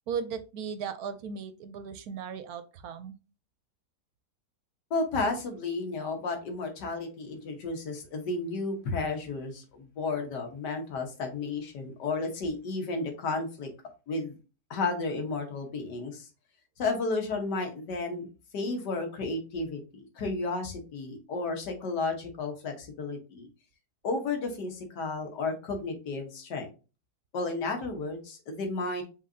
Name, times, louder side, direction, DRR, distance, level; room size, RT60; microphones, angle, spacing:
voice 1, 0.1-3.2, right 6 dB, 70° right, 10 dB, 1.0 m, -36 dB
voice 2, 4.9-13.7 14.1-14.4 14.7-16.3 16.8-18.3 18.5-23.5 24.0-26.7 27.3-29.0, left 3 dB, 80° left, 4 dB, 1.7 m, -32 dB
5.6 x 3.3 x 2.6 m, 0.32 s
omnidirectional pair, 1.8 m